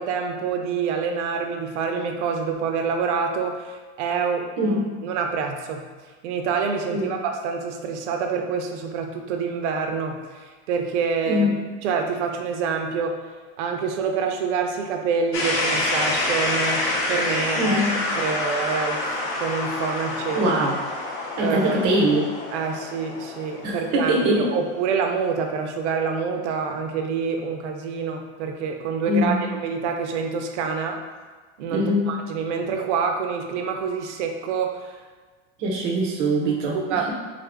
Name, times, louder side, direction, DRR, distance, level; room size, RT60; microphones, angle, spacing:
voice 1, 0.0-4.8 5.0-5.8 6.2-11.5 11.8-13.2 13.6-19.0 19.4-20.5 21.4-21.9 22.5-31.0 31.6-35.0 36.7-37.1, right 5 dB, 85° right, 4 dB, 0.6 m, -27 dB
sound 1, 15.3-25.2, left 2 dB, 45° left, 0.7 m, -27 dB
voice 2, 17.6-17.9 20.3-20.8 21.4-22.3 23.6-24.5 29.1-29.4 31.7-32.1 35.6-37.1, equal, 30° right, -1 dB, 0.5 m, -22 dB
3.6 x 2.5 x 3.4 m, 1.4 s
supercardioid pair, 180°, 35 cm